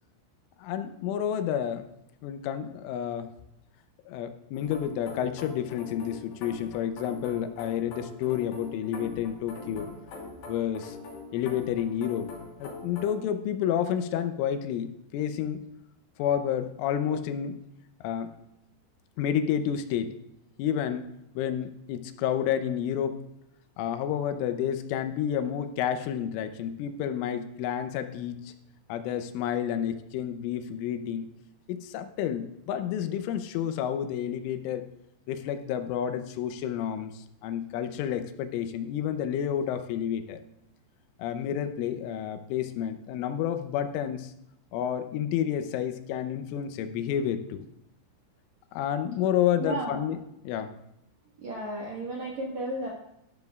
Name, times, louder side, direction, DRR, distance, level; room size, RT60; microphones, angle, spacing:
voice 1, 0.6-1.9 2.2-3.3 4.1-9.9 10.5-11.0 11.3-12.3 12.6-15.6 16.2-17.6 18.0-18.3 19.2-20.2 20.6-21.1 21.4-23.2 23.8-28.5 28.9-31.3 31.7-34.9 35.3-40.4 41.2-44.3 44.7-47.7 48.7-50.2 50.5-50.7, left 9 dB, 85° left, 9 dB, 3.2 m, -30 dB
sound 1, 4.5-13.2, left 3 dB, 65° left, 5.0 m, -43 dB
voice 2, 49.6-50.0 51.4-52.9, right 1 dB, 70° right, -3 dB, 1.8 m, -33 dB
13.0 x 12.0 x 2.3 m, 0.83 s
omnidirectional pair, 5.6 m